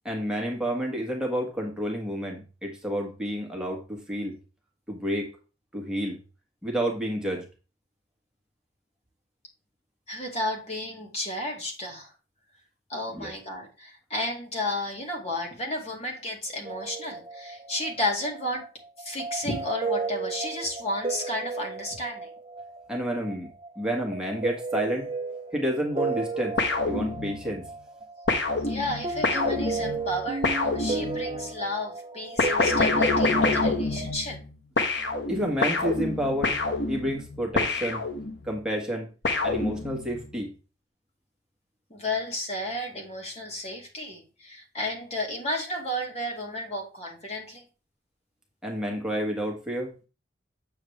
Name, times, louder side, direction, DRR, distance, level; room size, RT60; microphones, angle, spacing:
voice 1, 0.0-4.3 4.9-5.3 5.7-6.2 6.6-7.4 13.1-13.3 22.9-23.5 23.8-25.1 25.5-26.6 26.8-27.6 35.3-36.6 36.9-38.1 38.4-39.1 39.4-40.5 48.6-49.9, equal, 5° right, -1 dB, 1.5 m, -30 dB
voice 2, 10.1-12.1 12.9-18.7 19.0-22.3 28.6-34.4 41.9-47.7, left 1 dB, 30° left, 0 dB, 2.2 m, -32 dB
Synth Piano, 16.6-34.1, right 3 dB, 25° right, 1.0 m, -34 dB
sound 1, 26.6-27.6 28.3-31.4 32.4-34.5 34.8-38.5 39.2-40.2, left 3 dB, 60° left, 1.2 m, -27 dB
8.6 x 6.8 x 3.3 m, 0.33 s
head